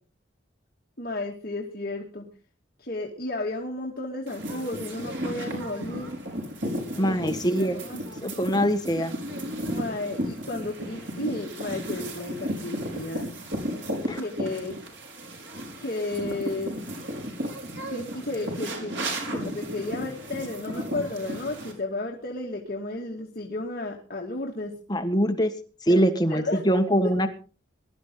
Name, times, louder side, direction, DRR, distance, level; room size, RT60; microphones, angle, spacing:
voice 1, 1.0-2.3 2.8-6.1 7.0-7.2 7.6-8.0 9.7-13.3 14.1-14.8 15.8-16.8 17.9-19.0 19.3-24.8 25.9-26.0 26.3-26.7 27.0-27.3, left 2 dB, 50° left, -1 dB, 2.3 m, -33 dB
sound 1, 4.3-21.7, equal, 70° right, 5.4 m, -34 dB
voice 2, 6.9-7.8 8.2-9.1 14.1-14.2 24.9-25.5 25.9-27.3, equal, 20° left, 6 dB, 1.4 m, -23 dB
21.0 x 12.5 x 3.9 m, 0.37 s
head